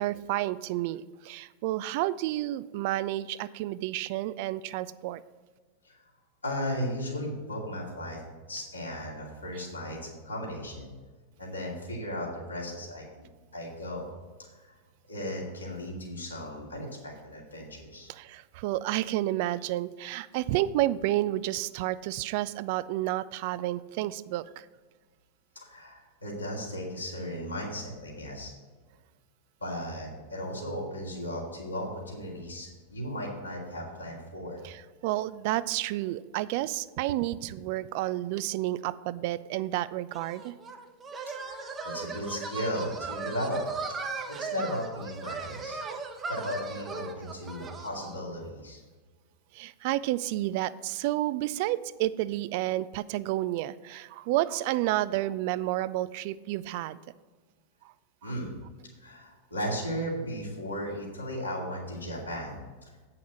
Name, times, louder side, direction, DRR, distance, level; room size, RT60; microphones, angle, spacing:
voice 1, 0.0-5.2 18.1-24.7 34.6-40.5 49.5-57.0 58.2-58.3, right 15 dB, 50° right, 17 dB, 0.3 m, -30 dB
voice 2, 6.4-8.2 8.5-10.9 11.4-13.3 13.5-14.1 14.6-14.7 15.1-18.1 25.6-28.5 29.6-34.6 41.4-43.6 44.3-45.8 46.3-48.8 58.2-58.5 59.0-62.9, equal, 80° left, -3 dB, 2.4 m, -36 dB
sound 1, 40.1-48.2, right 4 dB, 20° right, 0.9 m, -37 dB
8.4 x 5.8 x 6.1 m, 1.4 s
figure-of-eight pair, 90°, 0 cm